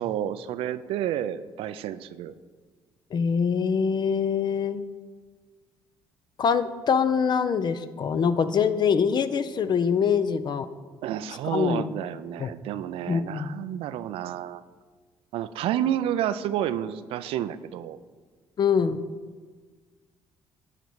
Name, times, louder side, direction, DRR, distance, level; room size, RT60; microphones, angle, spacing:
voice 1, 0.0-2.3 11.0-14.6 15.3-18.0, right 11 dB, 75° right, 14 dB, 0.4 m, -30 dB
voice 2, 3.1-4.8 6.4-10.7 11.4-11.9 12.4-12.5 13.1-13.5 18.6-19.0, left 6 dB, 50° left, 12 dB, 0.5 m, -24 dB
11.0 x 4.1 x 4.6 m, 1.5 s
supercardioid pair, 60°, 10 cm